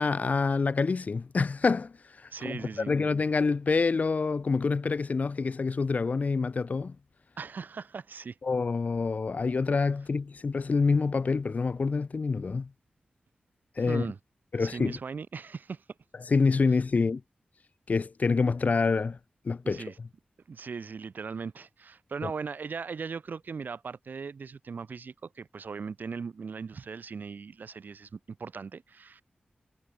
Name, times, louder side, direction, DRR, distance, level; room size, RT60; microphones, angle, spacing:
voice 1, 0.0-1.9 2.4-2.6 2.9-6.9 8.4-12.7 13.8-14.0 14.5-15.0 16.3-17.2 17.9-19.2 19.5-19.8 22.2-22.3, left 4 dB, 50° left, 1.8 m, -26 dB
voice 2, 2.3-2.9 7.4-8.4 13.9-14.2 14.6-15.8 19.6-20.0 20.5-29.2, right 5 dB, 70° right, 3.5 m, -38 dB
wide cardioid pair, 125°, 3 cm